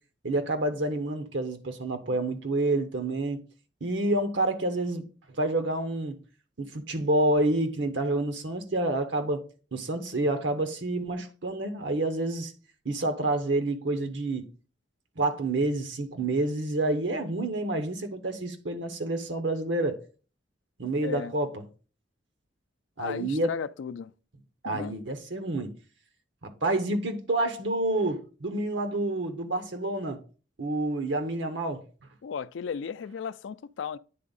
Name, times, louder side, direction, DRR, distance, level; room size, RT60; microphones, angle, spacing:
voice 1, 0.2-3.4 3.8-5.1 5.4-6.1 6.6-9.5 9.7-12.5 12.8-14.5 15.2-20.0 20.8-21.6 23.0-23.5 24.6-25.7 26.4-30.2 30.6-31.8, right 2 dB, 75° right, 0.9 m, -28 dB
voice 2, 21.0-21.3 23.0-24.1 24.6-24.9 32.2-34.0, left 7 dB, 80° left, 0.4 m, -35 dB
9.5 x 3.5 x 4.0 m
head